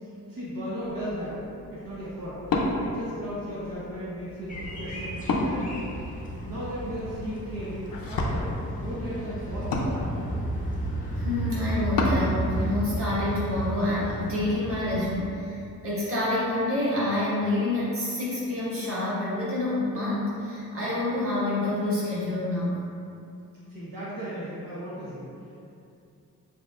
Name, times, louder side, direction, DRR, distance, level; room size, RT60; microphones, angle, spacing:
voice 1, 0.0-1.4 1.7-10.1 23.7-25.3, equal, 75° right, -9 dB, 1.2 m, -36 dB
Wood, 0.8-12.3, left 2 dB, 75° left, 0.6 m, -33 dB
sound 1, 4.5-15.1, right 1 dB, 25° left, 0.6 m, -33 dB
voice 2, 11.2-22.8, left 2 dB, 40° right, -9 dB, 1.5 m, -28 dB
6.9 x 2.8 x 2.5 m, 2.5 s
wide cardioid pair, 125°, 34 cm